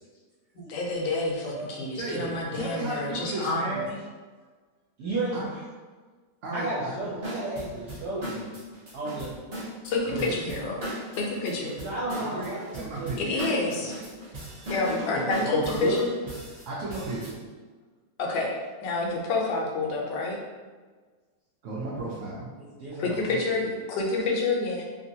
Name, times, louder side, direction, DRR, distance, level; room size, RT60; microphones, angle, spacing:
voice 1, 0.7-3.9 9.8-11.7 13.2-13.9 14.7-16.1 18.2-18.5 18.8-20.4 23.0-24.8, left 3 dB, 75° left, -2 dB, 1.3 m, -28 dB
voice 2, 1.9-3.9 5.3-5.5 6.4-7.2 10.1-10.3 12.2-13.3 16.7-17.4 21.6-22.5, right 2 dB, 85° right, -6 dB, 0.6 m, -34 dB
voice 3, 5.0-5.6 6.5-8.5 8.9-9.4 11.5-13.9 15.3-16.0 22.6-23.4, right 2 dB, 65° right, -7 dB, 1.1 m, -33 dB
sound 1, 7.2-17.3, equal, 40° right, 0.9 m, -37 dB
3.0 x 2.8 x 2.7 m, 1.4 s
omnidirectional pair, 2.1 m